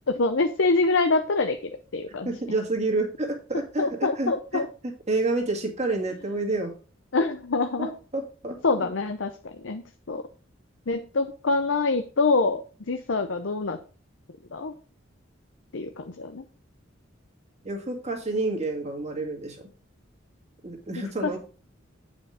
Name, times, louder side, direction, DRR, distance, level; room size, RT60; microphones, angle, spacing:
voice 1, 0.2-2.3 3.8-4.7 7.1-7.9 8.6-10.2 10.9-13.8 14.5-14.7 15.7-16.4 21.2-21.4, left 3 dB, 70° left, 7 dB, 0.7 m, -25 dB
voice 2, 2.2-4.6 5.1-6.7 7.8-8.9 17.6-19.6 20.6-21.4, right 2 dB, 35° right, 1 dB, 2.1 m, -29 dB
8.8 x 5.1 x 5.0 m, 0.37 s
head